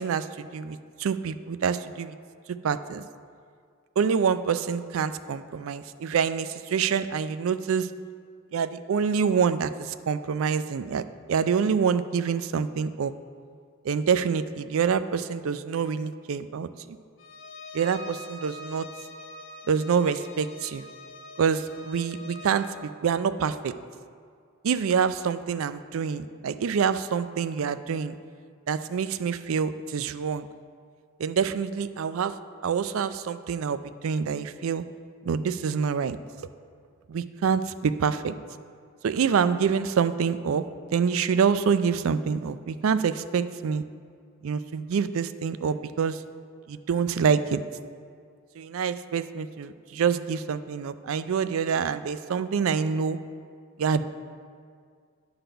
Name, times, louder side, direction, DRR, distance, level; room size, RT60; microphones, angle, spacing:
voice 1, 0.0-2.1 2.6-3.0 4.0-7.9 8.5-13.1 13.8-17.0 17.7-18.9 19.7-20.8 21.4-23.7 24.6-28.2 28.7-30.5 31.2-32.3 32.6-33.8 34.0-34.8 35.2-36.2 37.1-38.4 39.0-40.7 40.9-43.8 44.4-46.2 46.7-47.6 48.6-53.2 53.8-54.0, right 6 dB, 75° right, 12 dB, 0.4 m, -26 dB
Bowed string instrument, 17.2-22.8, left 2 dB, 65° left, 1.0 m, -44 dB
11.0 x 4.0 x 6.8 m, 2.1 s
head